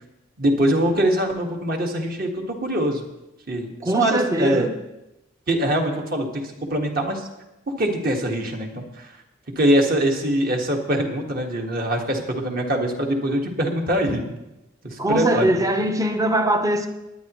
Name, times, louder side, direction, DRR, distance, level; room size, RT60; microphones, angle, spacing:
voice 1, 0.4-3.0 3.5-4.7 5.5-6.4 6.7-7.3 7.7-9.1 9.5-14.3 14.8-15.5, right 1 dB, 45° right, 1.7 m, -23 dB
voice 2, 3.8-4.7 15.0-16.9, right 1 dB, 15° right, 0.8 m, -21 dB
19.5 x 10.0 x 3.1 m
head